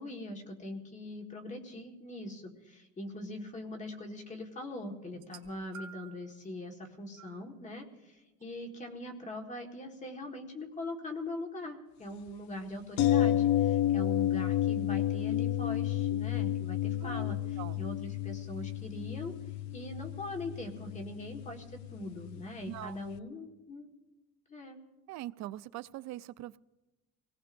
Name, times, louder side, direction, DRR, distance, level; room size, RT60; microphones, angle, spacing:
voice 1, 0.0-19.3 19.7-23.9 24.5-24.8, left 1 dB, 25° left, 3 dB, 1.7 m, -42 dB
sound 1, 5.1-6.3 7.2-7.4 8.4-8.5, right 5 dB, 80° right, 1.9 m, -50 dB
sound 2, 13.0-22.8 23.1-23.2, left 12 dB, 65° left, 0.6 m, -31 dB
voice 2, 17.0-17.8 22.7-23.0 25.1-26.6, right 15 dB, 65° right, 16 dB, 0.5 m, -42 dB
25.5 x 18.0 x 2.6 m, 1.1 s
cardioid pair, 160°, 30 cm